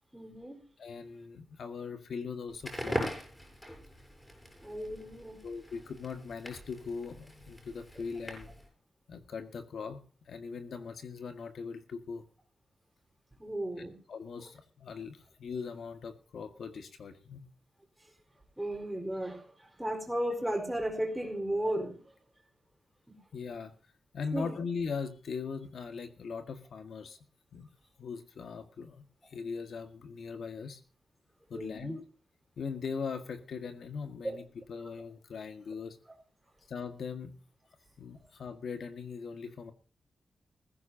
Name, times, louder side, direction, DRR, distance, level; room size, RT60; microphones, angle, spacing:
voice 1, 0.1-0.6 4.6-5.4 13.4-13.9 18.6-19.4 19.8-22.0 23.1-23.2 24.3-24.6 31.5-32.0 34.2-34.4, right 1 dB, 10° right, 2 dB, 4.6 m, -34 dB
voice 2, 0.8-3.2 5.4-8.5 9.1-12.2 14.1-17.5 23.3-23.7 24.1-27.2 27.5-27.7 28.0-30.8 31.5-32.0 32.6-36.0 36.7-37.3 38.0-39.7, left 5 dB, 75° left, 8 dB, 1.9 m, -40 dB
Crackle, 2.5-8.7, equal, 10° left, 7.4 m, -41 dB
20.0 x 15.5 x 2.8 m, 0.40 s
wide cardioid pair, 115°, 0 cm